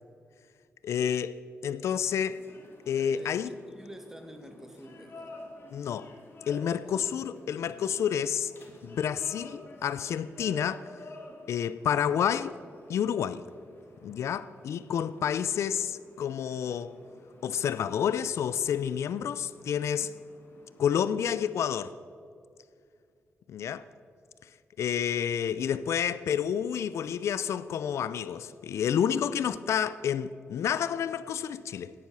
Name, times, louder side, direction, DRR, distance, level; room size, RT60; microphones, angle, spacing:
voice 1, 0.8-2.4 2.9-3.5 5.7-6.1 6.5-8.5 8.8-10.8 11.5-12.6 12.9-13.4 14.0-16.9 17.4-20.1 20.8-21.9 23.5-23.8 24.8-31.9, left 8 dB, 80° left, 0.5 m, -29 dB
sound 1, 2.3-21.4, left 2 dB, 55° left, 2.4 m, -52 dB
voice 2, 3.1-5.4 6.8-7.1 7.6-8.2 20.0-20.1, equal, 10° right, 1.8 m, -49 dB
16.5 x 10.5 x 6.2 m
cardioid pair, 105°, 5 cm